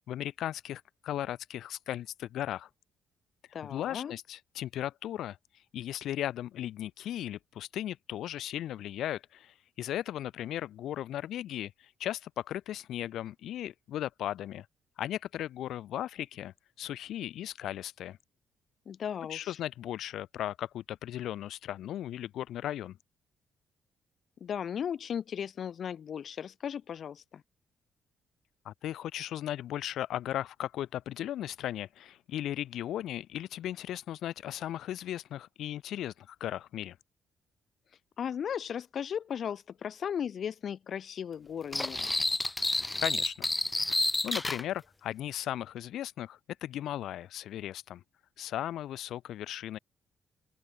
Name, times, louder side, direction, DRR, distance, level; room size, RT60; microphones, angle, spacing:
voice 1, 0.1-2.7 3.7-5.4 5.7-14.7 15.0-18.2 19.3-23.0 28.6-37.0 43.0-43.5 43.9-44.0 44.2-48.0 48.4-49.8, left 12 dB, 75° left, 2.9 m, -36 dB
voice 2, 3.5-4.1 18.9-19.6 24.4-27.4 38.2-42.1, left 8 dB, 55° left, 7.1 m, -36 dB
sound 1, 41.7-44.6, left 2 dB, 15° left, 2.6 m, -30 dB
open air
cardioid pair, 90°, 0 cm